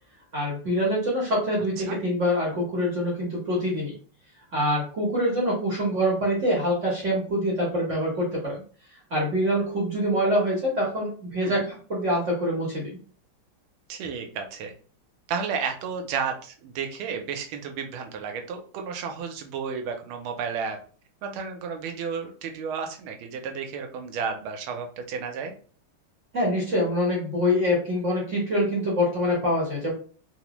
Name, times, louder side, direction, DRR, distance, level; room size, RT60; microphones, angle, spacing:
voice 1, 0.3-3.9 4.5-8.6 9.1-12.9 26.3-29.9, equal, 50° right, -5 dB, 1.0 m, -25 dB
voice 2, 13.9-14.7 15.3-20.8 21.2-25.5, right 6 dB, 80° right, 5 dB, 1.5 m, -32 dB
3.8 x 2.0 x 2.9 m, 0.42 s
omnidirectional pair, 2.3 m